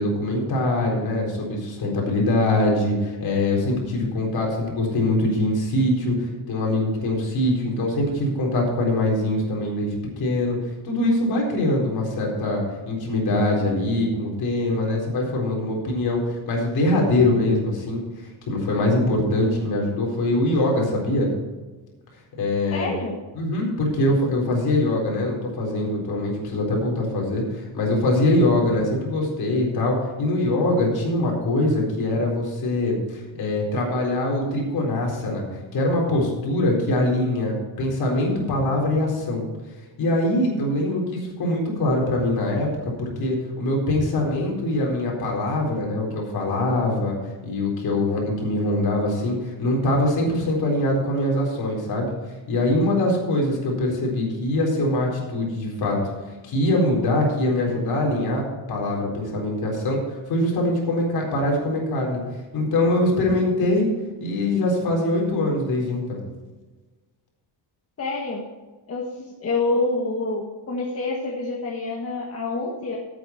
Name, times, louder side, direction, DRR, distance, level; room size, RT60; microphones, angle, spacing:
voice 1, 0.0-10.6 10.8-21.3 22.4-22.9 23.4-39.4 40.0-47.2 47.4-52.1 52.5-56.1 56.4-62.2 62.5-63.9 64.2-66.2, left 1 dB, 50° left, -1 dB, 4.2 m, -23 dB
voice 2, 22.7-23.1 68.0-68.4 68.9-73.0, left 3 dB, 30° left, -3 dB, 1.6 m, -27 dB
14.0 x 8.8 x 4.5 m, 1.2 s
cardioid pair, 180°, 47 cm